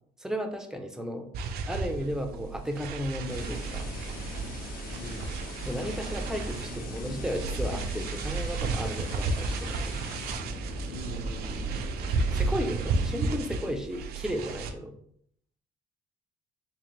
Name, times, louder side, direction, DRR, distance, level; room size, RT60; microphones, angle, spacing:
voice 1, 0.2-1.3 1.7-3.9 5.6-10.0 12.3-14.9, equal, 5° right, 4 dB, 0.5 m, -34 dB
sound 1, 1.3-14.7, right 3 dB, 65° right, 0.5 m, -33 dB
sound 2, 3.1-13.1, right 1 dB, 85° left, 1.3 m, -38 dB
sound 3, 3.3-10.3, left 2 dB, 60° left, 1.2 m, -46 dB
voice 2, 4.9-5.3 10.9-11.8, left 1 dB, 35° left, 2 dB, 0.9 m, -43 dB
3.8 x 2.6 x 3.2 m, 0.67 s
cardioid pair, 110°, 17 cm